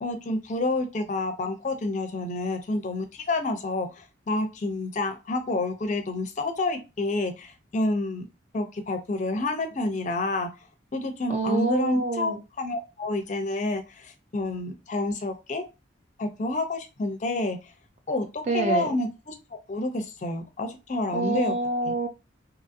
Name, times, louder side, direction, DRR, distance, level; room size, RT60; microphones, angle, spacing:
voice 1, 0.0-8.3 8.5-10.5 10.9-15.6 16.2-17.6 18.1-21.5 21.8-21.9, left 2 dB, 35° left, 6 dB, 0.4 m, -29 dB
voice 2, 11.3-12.4 18.5-18.9 21.1-22.1, right 3 dB, 35° right, 7 dB, 0.4 m, -27 dB
2.8 x 2.5 x 2.5 m, 0.27 s
head